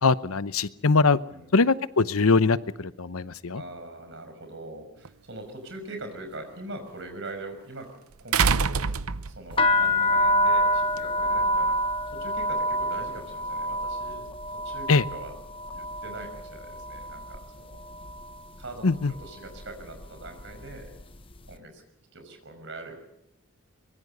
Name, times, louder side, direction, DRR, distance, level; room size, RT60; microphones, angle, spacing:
voice 1, 0.0-1.2 1.5-3.6 14.9-15.0 18.8-19.1, left 4 dB, 80° left, 15 dB, 0.8 m, -22 dB
voice 2, 3.5-7.9 8.2-8.8 9.1-11.8 12.1-14.9 15.1-15.3 15.7-17.8 18.6-20.9 21.5-21.8 22.1-23.0, right 2 dB, 55° right, 6 dB, 5.7 m, -42 dB
sound 1, 5.0-5.1 8.3-9.6 11.0-11.1, right 5 dB, 80° right, 0.8 m, -24 dB
sound 2, 9.5-17.4 17.7-18.4 19.0-19.3 19.6-21.0, equal, 25° left, 1.0 m, -27 dB
23.5 x 22.5 x 6.7 m, 0.81 s
head